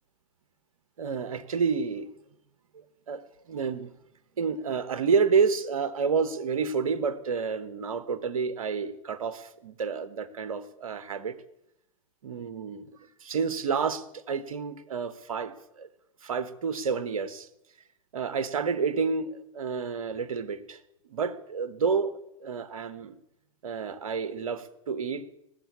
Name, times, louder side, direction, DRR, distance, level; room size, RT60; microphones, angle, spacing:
voice 1, 1.0-2.1 2.7-3.2 3.5-3.9 4.4-11.3 12.2-15.9 16.2-17.5 18.1-20.8 21.1-23.2 23.6-25.2, right 5 dB, 80° right, 14 dB, 1.1 m, -29 dB
18.5 x 6.8 x 8.5 m, 0.82 s
hypercardioid pair, 105°, 18 cm